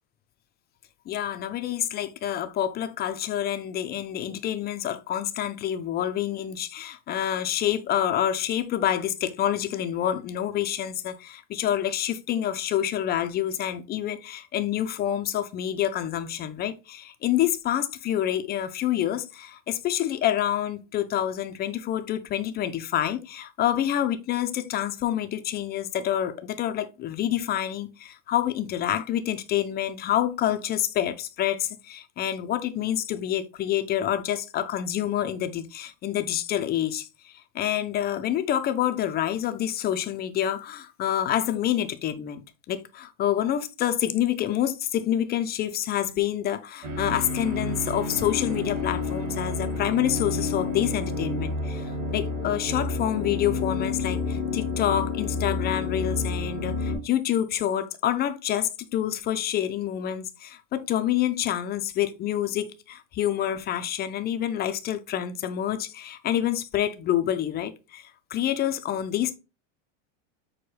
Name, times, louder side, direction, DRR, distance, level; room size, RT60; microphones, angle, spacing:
voice 1, 1.1-42.4 42.7-69.3, left 11 dB, 25° left, 0.4 m, -27 dB
sound 1, 46.8-57.0, left 3 dB, 45° right, 2.7 m, -29 dB
6.0 x 2.2 x 3.2 m
supercardioid pair, 115°, 38 cm